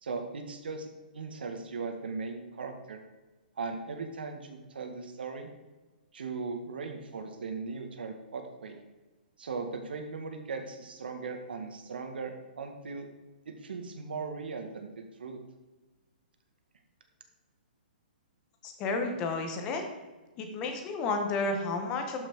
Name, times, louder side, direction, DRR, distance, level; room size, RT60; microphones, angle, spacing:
voice 1, 0.0-0.9 1.1-3.0 3.6-5.5 6.1-8.8 9.4-13.1 13.5-14.9 15.2-15.4, right 4 dB, 85° right, 5 dB, 2.0 m, -38 dB
voice 2, 18.6-19.8 20.4-22.3, left 3 dB, 15° left, 5 dB, 1.1 m, -31 dB
12.5 x 6.0 x 4.9 m, 1.2 s
hypercardioid pair, 180°, 5 cm